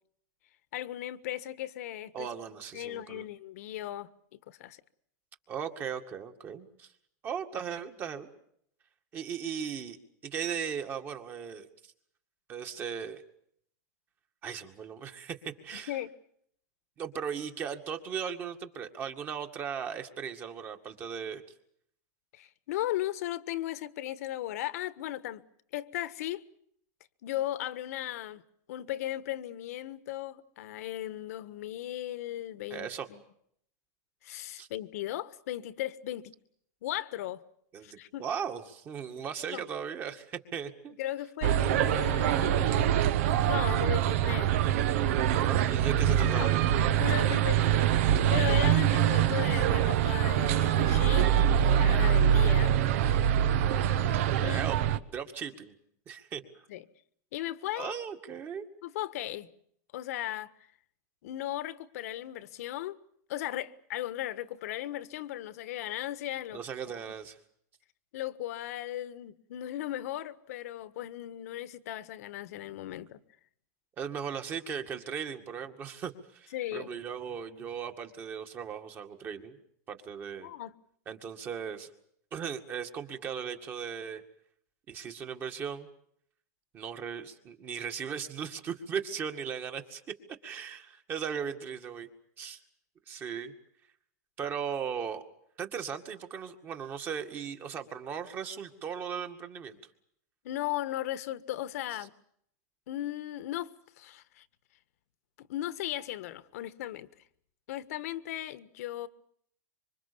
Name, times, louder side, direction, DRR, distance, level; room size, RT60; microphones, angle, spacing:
voice 1, 0.7-2.3 2.7-4.8 15.7-16.1 22.3-25.4 25.7-26.4 27.2-28.4 28.7-33.2 34.2-36.3 36.8-37.4 37.8-38.2 39.1-39.2 39.5-39.6 41.0-43.1 43.4-44.5 45.3-45.5 46.3-46.5 47.0-52.7 54.4-54.9 56.7-56.8 57.3-58.0 58.8-59.5 59.9-60.5 61.2-63.0 63.3-66.6 68.1-73.2 76.5-76.9 80.4-80.7 100.4-102.1 102.9-103.7 104.0-104.4 105.4-107.1 107.7-109.1, left 13 dB, 60° left, 1.6 m, -37 dB
voice 2, 2.1-3.2 5.5-6.9 7.2-8.3 9.1-10.0 10.2-11.9 12.5-13.2 14.4-16.0 17.0-21.4 32.7-33.1 34.6-34.7 37.7-41.0 45.3-47.0 54.4-54.8 55.1-55.7 56.1-56.6 57.8-58.6 66.5-67.4 74.0-79.6 79.9-80.5 81.1-81.9 82.3-84.2 84.9-85.9 86.7-90.0 90.4-92.1 92.4-92.6 93.1-93.5 94.4-95.2 95.6-99.8, right 7 dB, 20° right, 2.1 m, -37 dB
sound 1, 41.4-55.0, right 10 dB, 55° right, 1.2 m, -24 dB
26.0 x 25.0 x 7.0 m
supercardioid pair, 170°, 9 cm